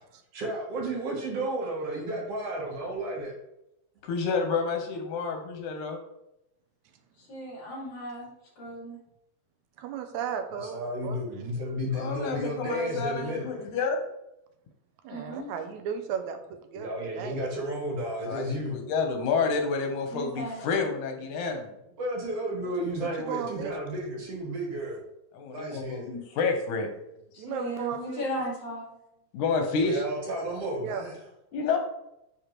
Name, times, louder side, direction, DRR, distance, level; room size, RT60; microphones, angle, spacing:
voice 1, 0.3-3.3 10.7-13.5 16.7-18.8 22.0-25.0 25.5-26.1 29.8-31.2, right 1 dB, 60° right, -1 dB, 2.0 m, -32 dB
voice 2, 4.0-6.0 11.9-14.0 18.2-21.7 25.3-26.9 29.3-30.0 31.5-31.8, left 4 dB, 85° left, 3 dB, 2.4 m, -29 dB
voice 3, 7.2-9.0 15.1-15.6 20.1-20.6 27.3-28.9, equal, 55° left, -4 dB, 3.4 m, -36 dB
voice 4, 9.8-11.2 15.0-17.4 23.0-23.7 27.4-28.2 30.8-31.1, right 7 dB, 80° right, 7 dB, 1.9 m, -35 dB
10.0 x 3.7 x 3.1 m, 0.84 s
omnidirectional pair, 3.4 m